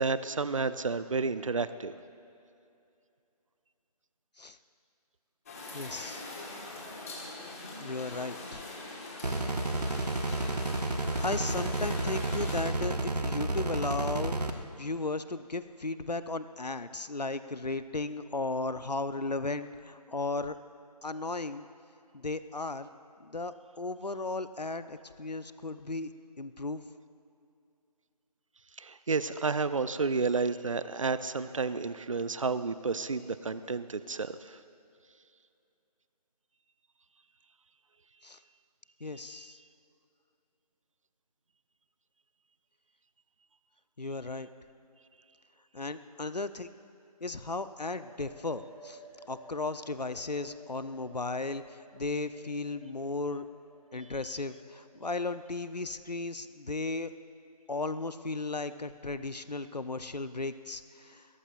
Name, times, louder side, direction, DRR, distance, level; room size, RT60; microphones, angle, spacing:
voice 1, 0.0-1.9 28.8-34.6, right 4 dB, 55° right, 13 dB, 0.6 m, -31 dB
sound 1, 5.5-12.6, left 2 dB, 20° left, 1.7 m, -43 dB
voice 2, 5.7-6.3 7.8-8.6 11.2-20.6 21.0-21.6 22.1-22.9 23.2-26.1 26.4-26.8 38.2-38.4 39.0-39.6 44.0-44.5 45.7-46.7 47.2-49.0 49.3-53.5 53.9-57.1 57.7-61.3, left 3 dB, 90° left, 12 dB, 0.8 m, -35 dB
sound 2, 9.2-14.5, right 2 dB, 80° right, 1.2 m, -31 dB
sound 3, 47.7-55.4, right 1 dB, ahead, 0.8 m, -55 dB
22.0 x 17.5 x 2.6 m, 2.6 s
figure-of-eight pair, 160°, 20 cm